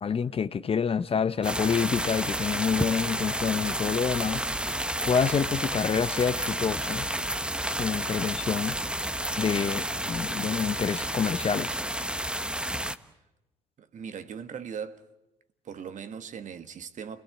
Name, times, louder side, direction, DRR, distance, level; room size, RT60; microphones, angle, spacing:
voice 1, 0.0-4.4 5.0-7.1 7.7-8.8 9.4-11.8, left 6 dB, 40° left, 0.9 m, -27 dB
sound 1, 1.4-12.9, right 1 dB, 5° right, 1.2 m, -31 dB
voice 2, 13.8-15.0 15.6-17.2, right 7 dB, 55° right, 1.5 m, -39 dB
28.5 x 18.0 x 8.0 m
hypercardioid pair, 60°, 16 cm